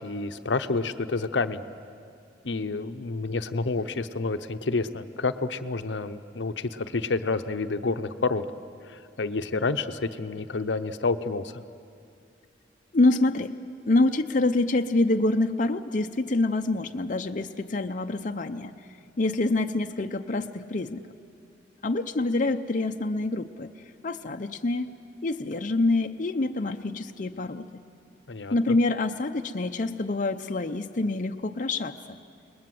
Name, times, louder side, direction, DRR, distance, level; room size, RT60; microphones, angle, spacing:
voice 1, 0.0-1.6 2.4-8.4 8.8-11.6 28.3-28.8, left 3 dB, 80° left, 10 dB, 0.8 m, -29 dB
voice 2, 12.9-13.5 13.9-18.8 19.2-21.0 21.8-23.7 24.0-24.9 25.2-27.7 28.5-32.2, left 2 dB, 45° left, 6 dB, 0.7 m, -26 dB
29.0 x 20.5 x 7.8 m, 2.5 s
head